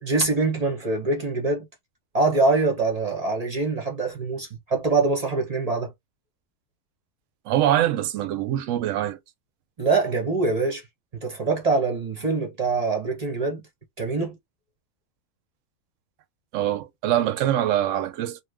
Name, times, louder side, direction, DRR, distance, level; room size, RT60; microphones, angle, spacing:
voice 1, 0.0-1.7 2.1-5.9 9.8-10.8 11.1-13.6 14.0-14.4, right 3 dB, 35° right, 0.7 m, -24 dB
voice 2, 7.5-9.2 16.5-18.4, right 12 dB, 70° right, 0.8 m, -24 dB
3.1 x 2.1 x 3.3 m
omnidirectional pair, 1.6 m